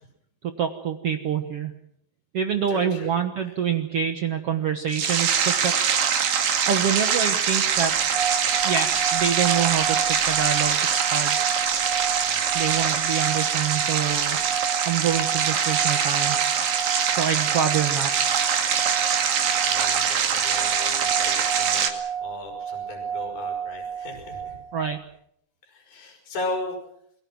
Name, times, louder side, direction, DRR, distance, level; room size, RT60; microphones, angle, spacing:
voice 1, 0.6-1.8 2.3-6.1 6.6-7.9 8.6-11.4 12.5-14.4 14.8-16.4 16.7-18.1 24.7-25.0, right 8 dB, 80° right, 6 dB, 1.3 m, -26 dB
voice 2, 2.7-3.1 12.2-12.5 19.7-21.9 22.2-24.6 25.6-26.8, left 2 dB, 60° left, 3 dB, 7.5 m, -36 dB
sound 1, 4.9-21.9, right 7 dB, 60° right, 3.7 m, -23 dB
sound 2, 7.8-25.0, right 7 dB, 15° left, 2.2 m, -32 dB
29.0 x 22.5 x 6.1 m, 0.72 s
omnidirectional pair, 4.7 m